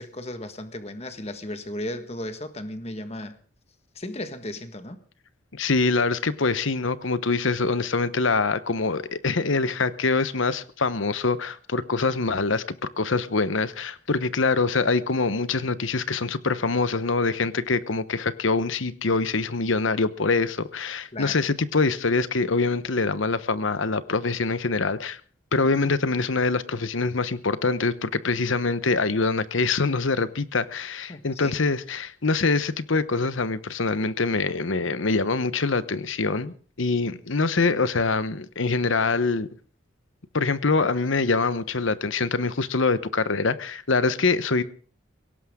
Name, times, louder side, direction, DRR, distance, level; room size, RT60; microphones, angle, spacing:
voice 1, 0.0-3.3 3.9-5.0 21.1-21.4 31.1-31.6, left 1 dB, 30° left, 1.5 m, -35 dB
voice 2, 5.5-12.6 13.0-25.2 25.5-39.5 40.3-44.6, left 3 dB, 75° left, 1.0 m, -24 dB
22.0 x 17.5 x 3.7 m
head